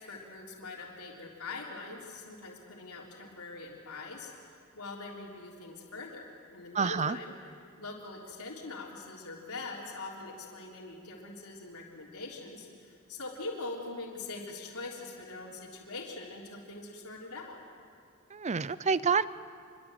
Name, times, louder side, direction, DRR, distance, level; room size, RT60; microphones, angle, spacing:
voice 1, 0.0-7.3 7.8-17.6, left 3 dB, 85° left, -2 dB, 3.5 m, -43 dB
voice 2, 6.7-7.2 18.3-19.3, right 5 dB, 30° right, 17 dB, 0.5 m, -28 dB
26.0 x 23.0 x 7.9 m, 2.3 s
head